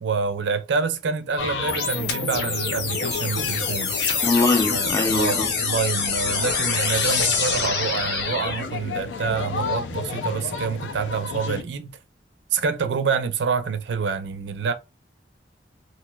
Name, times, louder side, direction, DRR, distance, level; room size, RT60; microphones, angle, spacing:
voice 1, 0.0-4.0 4.7-12.0 12.5-14.7, right 5 dB, 75° right, 0.4 m, -27 dB
sound 1, 1.4-11.6, left 4 dB, 85° left, 0.4 m, -32 dB
sound 2, 1.7-8.7, left 5 dB, 65° left, 0.7 m, -25 dB
voice 2, 4.2-5.5, left 2 dB, 15° left, 0.5 m, -22 dB
2.9 x 2.6 x 2.2 m
head